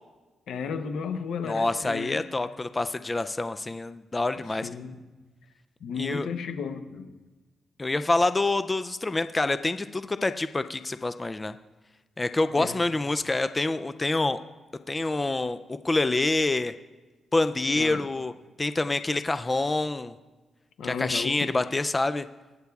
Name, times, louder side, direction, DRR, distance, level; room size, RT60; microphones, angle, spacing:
voice 1, 0.5-2.3 4.3-5.0 5.8-7.1 12.6-12.8 17.7-18.0 20.8-21.5, left 6 dB, 85° left, 9 dB, 0.8 m, -34 dB
voice 2, 1.4-4.7 6.0-6.3 7.8-11.5 12.2-14.4 14.9-16.7 17.3-18.3 18.6-20.1 20.8-22.3, left 2 dB, 20° left, 11 dB, 0.3 m, -26 dB
24.0 x 8.0 x 2.3 m, 1.2 s
cardioid pair, 125°, 0 cm